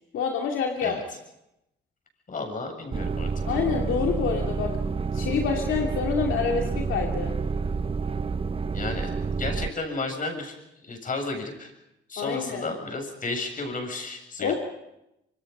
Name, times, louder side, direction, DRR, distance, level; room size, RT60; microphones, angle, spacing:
voice 1, 0.1-1.0 3.5-4.7 5.1-7.4 12.2-12.6 14.4-14.5, left 6 dB, 75° left, 1 dB, 2.5 m, -27 dB
voice 2, 2.3-3.3 8.7-9.1 9.4-10.6 10.8-11.7 12.1-14.6, left 3 dB, 45° left, 3 dB, 7.4 m, -32 dB
sound 1, 2.9-9.7, right 4 dB, 30° right, 0.8 m, -29 dB
26.5 x 24.0 x 5.5 m, 0.87 s
cardioid pair, 90°, 20 cm